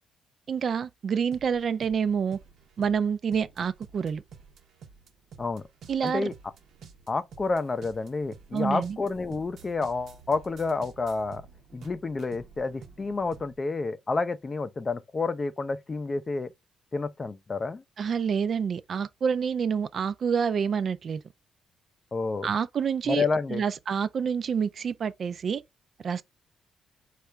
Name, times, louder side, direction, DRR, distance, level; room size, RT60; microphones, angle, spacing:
voice 1, 0.5-2.4 2.8-4.2 5.9-6.3 8.5-9.0 18.0-21.2 22.4-25.6 26.0-26.2, right 7 dB, 50° right, 0.3 m, -28 dB
sound 1, 1.3-13.6, right 6 dB, 70° right, 0.7 m, -50 dB
voice 2, 6.0-6.3 7.1-11.5 11.7-16.5 16.9-17.8 22.1-22.5 23.1-23.6, left 3 dB, 30° left, 0.4 m, -29 dB
4.5 x 2.4 x 3.1 m
cardioid pair, 90°, 0 cm